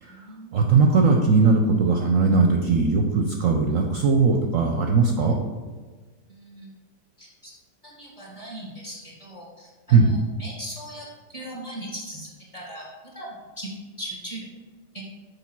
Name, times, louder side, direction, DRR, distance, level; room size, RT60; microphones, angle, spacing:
voice 1, 0.0-0.7 6.3-6.7 7.2-7.5 7.8-12.9 13.1-13.7 14.0-14.5 14.9-15.1, right 1 dB, 20° left, -3 dB, 1.7 m, -39 dB
voice 2, 0.5-5.4 9.9-10.2, right 4 dB, 65° right, 3 dB, 0.8 m, -19 dB
6.9 x 4.8 x 4.5 m, 1.3 s
omnidirectional pair, 1.9 m